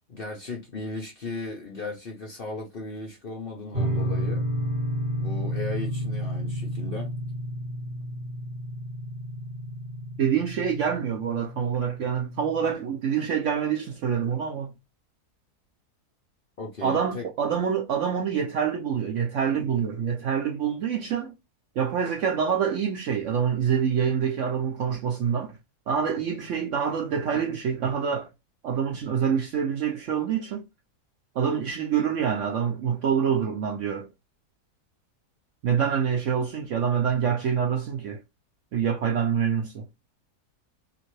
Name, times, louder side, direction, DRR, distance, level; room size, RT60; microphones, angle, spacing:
voice 1, 0.1-4.4 5.2-7.1 16.6-17.3, left 3 dB, 50° left, 0.7 m, -36 dB
sound 1, 3.7-12.7, equal, 30° right, 1.5 m, -31 dB
voice 2, 10.2-14.7 16.8-21.3 21.8-25.6 25.9-28.3 28.6-30.6 31.4-34.1 35.6-38.2 38.7-39.9, right 7 dB, 70° right, 0.8 m, -26 dB
2.8 x 2.6 x 3.0 m
omnidirectional pair, 1.7 m